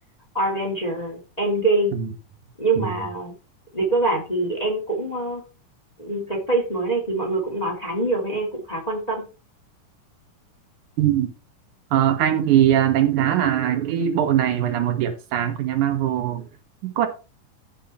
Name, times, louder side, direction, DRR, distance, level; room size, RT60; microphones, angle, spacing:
voice 1, 0.3-2.0 2.6-3.4 3.7-5.4 6.0-9.3, right 2 dB, 15° left, 2.1 m, -24 dB
voice 2, 11.0-11.3 11.9-16.5 16.8-17.1, right 11 dB, 70° right, 2.6 m, -21 dB
14.5 x 5.2 x 4.2 m
omnidirectional pair, 3.7 m